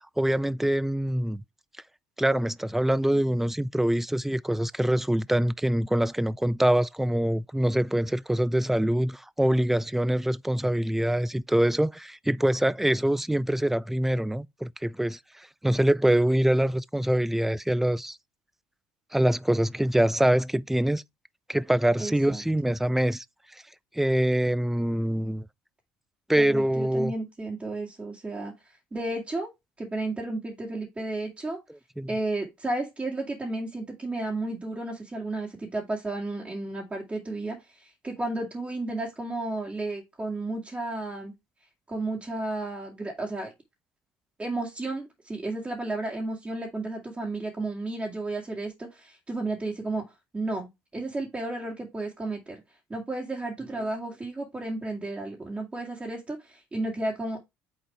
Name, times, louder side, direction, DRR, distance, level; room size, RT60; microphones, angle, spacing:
voice 1, 0.2-1.4 2.2-18.2 19.1-21.0 21.5-23.2 23.9-25.4 26.3-27.1 32.0-32.1, right 1 dB, 5° right, 0.4 m, -24 dB
voice 2, 22.0-22.4 26.4-28.5 28.9-29.5 29.8-31.6 32.1-41.3 41.9-43.5 44.4-50.0 50.3-52.6 52.9-57.4, right 2 dB, 20° right, 2.3 m, -33 dB
6.3 x 4.0 x 4.7 m
hypercardioid pair, 70°, 7 cm